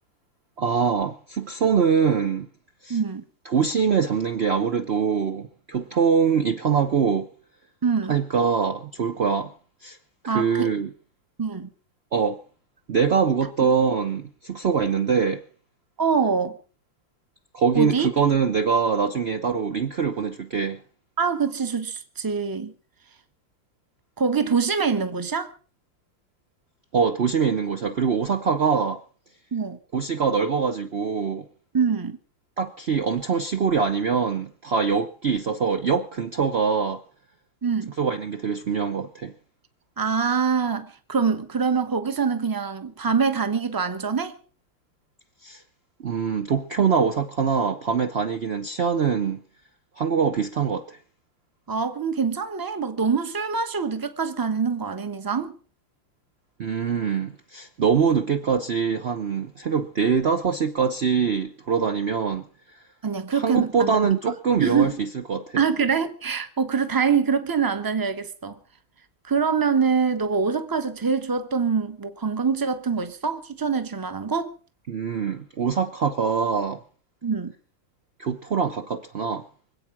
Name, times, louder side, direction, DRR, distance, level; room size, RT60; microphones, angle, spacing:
voice 1, 0.6-2.5 2.8-3.0 3.5-7.3 8.1-9.5 9.8-10.0 10.2-10.9 12.1-12.4 12.9-15.4 17.5-20.8 26.9-29.0 29.9-31.4 32.6-37.0 38.0-39.3 45.4-45.6 46.0-49.4 50.0-51.0 56.6-62.4 63.3-65.6 74.9-76.8 78.2-79.5, right 6 dB, 60° right, 0.6 m, -23 dB
voice 2, 2.9-3.2 7.8-8.2 10.3-10.7 11.4-11.7 16.0-16.6 17.7-18.1 21.2-22.7 24.2-25.5 29.5-29.8 31.7-32.2 37.6-37.9 40.0-44.4 51.7-55.5 63.0-64.0 64.6-65.0 65.6-68.6 69.2-74.5 77.2-77.5, right 5 dB, 15° right, 0.7 m, -24 dB
25.0 x 8.5 x 5.9 m
omnidirectional pair, 2.3 m